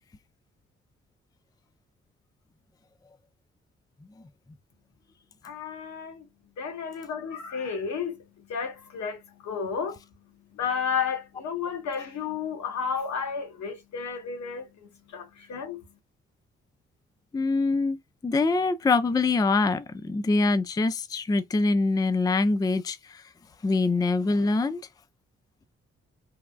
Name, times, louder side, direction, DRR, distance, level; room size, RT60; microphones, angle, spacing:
voice 1, 5.4-6.3 6.6-10.0 10.5-14.7 15.1-15.8, left 6 dB, 65° left, 1.1 m, -32 dB
voice 2, 17.3-23.2 23.6-24.8, left 3 dB, 15° left, 0.4 m, -24 dB
3.3 x 2.1 x 2.2 m
hypercardioid pair, 40°, 29 cm